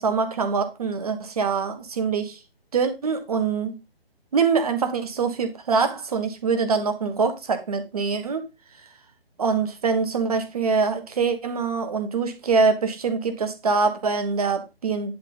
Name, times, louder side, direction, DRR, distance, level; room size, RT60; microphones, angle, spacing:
voice 1, 0.0-2.4 2.7-3.8 4.3-8.4 9.4-15.1, right 5 dB, 35° right, 1.4 m, -24 dB
10.5 x 3.8 x 5.4 m
figure-of-eight pair, 145°, 31 cm